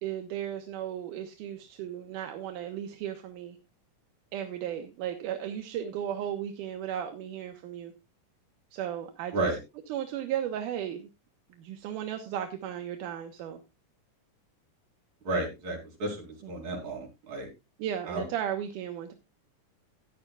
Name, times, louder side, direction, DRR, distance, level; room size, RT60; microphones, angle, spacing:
voice 1, 0.0-3.6 4.3-7.9 8.7-9.5 9.9-11.1 11.6-13.6 16.4-16.5 17.8-19.1, right 10 dB, 80° right, 5 dB, 2.4 m, -35 dB
voice 2, 15.2-17.5 18.1-18.2, right 2 dB, 60° right, -1 dB, 5.5 m, -32 dB
15.5 x 10.5 x 2.4 m, 0.25 s
omnidirectional pair, 3.8 m